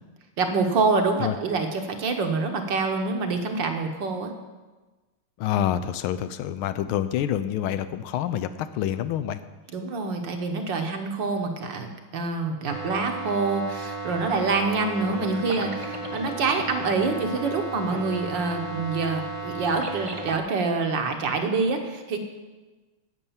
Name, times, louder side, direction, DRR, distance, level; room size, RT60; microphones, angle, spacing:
voice 1, 0.4-4.3 9.7-22.2, right 4 dB, 60° right, 4 dB, 1.7 m, -26 dB
voice 2, 5.4-8.5 8.7-9.4, left 11 dB, 80° left, 12 dB, 1.4 m, -27 dB
sound 1, 12.7-20.4, right 2 dB, 45° right, 0.4 m, -34 dB
10.0 x 7.9 x 7.2 m, 1.2 s
omnidirectional pair, 2.4 m